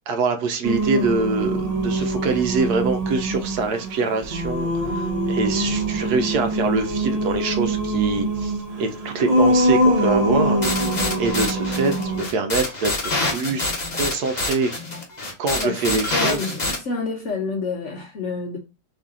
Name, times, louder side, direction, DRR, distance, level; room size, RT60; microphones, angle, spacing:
voice 1, 0.1-13.0 13.3-14.7 15.4-16.5, right 3 dB, 70° right, 1.1 m, -24 dB
Singing, 0.6-12.3, right 1 dB, 50° right, 0.4 m, -23 dB
sound 1, 10.6-16.8, left 2 dB, 30° left, 0.9 m, -26 dB
voice 2, 15.4-15.8 16.1-18.6, left 4 dB, 60° left, 0.9 m, -28 dB
4.2 x 3.2 x 3.6 m
omnidirectional pair, 1.9 m